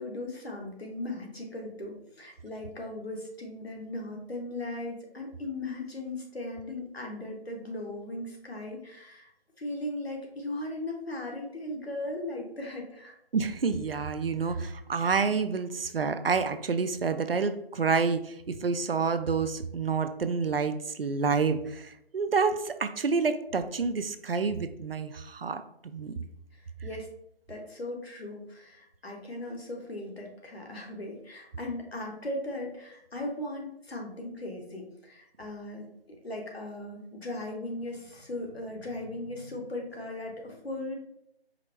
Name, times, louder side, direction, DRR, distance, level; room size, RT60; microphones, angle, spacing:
voice 1, 0.0-9.3 9.6-13.1 14.4-14.7 26.8-27.1 27.5-40.9, left 1 dB, 75° left, 1 dB, 1.3 m, -38 dB
voice 2, 13.3-26.1, right 5 dB, 65° right, 10 dB, 0.4 m, -28 dB
4.9 x 2.0 x 4.4 m, 0.75 s
figure-of-eight pair, 175°, 31 cm